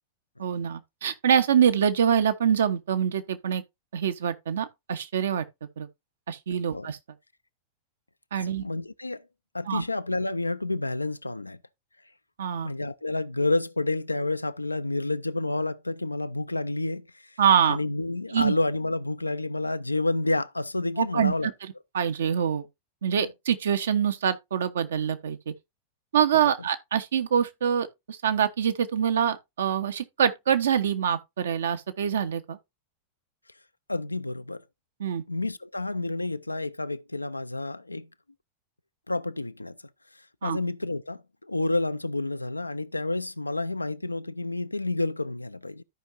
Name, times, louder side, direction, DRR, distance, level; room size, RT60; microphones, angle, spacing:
voice 1, 0.4-3.6 3.9-5.4 5.8-5.9 6.3-7.0 8.3-8.6 9.7-9.8 12.4-12.7 17.4-17.8 18.3-18.5 21.0-21.5 21.9-22.6 23.0-25.5 26.1-32.6 35.0-35.2 40.4-40.6, right 8 dB, 65° right, 1.0 m, -25 dB
voice 2, 8.4-9.2 9.5-11.6 12.6-17.3 17.7-21.5 33.9-34.6 35.3-38.1 39.1-39.8 40.4-45.8, left 2 dB, 85° left, 0.5 m, -29 dB
13.5 x 5.4 x 2.6 m
figure-of-eight pair, 90°, 0 cm